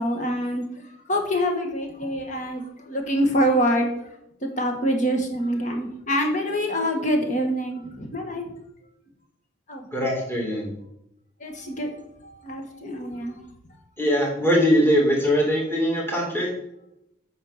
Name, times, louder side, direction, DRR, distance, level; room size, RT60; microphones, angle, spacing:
voice 1, 0.0-3.9 4.5-8.4 9.7-9.9 11.4-12.0 12.2-13.4, equal, 35° left, 3 dB, 1.6 m, -25 dB
voice 2, 9.9-10.7 14.0-16.5, equal, 10° left, -3 dB, 2.3 m, -21 dB
8.7 x 5.4 x 6.7 m, 0.80 s
head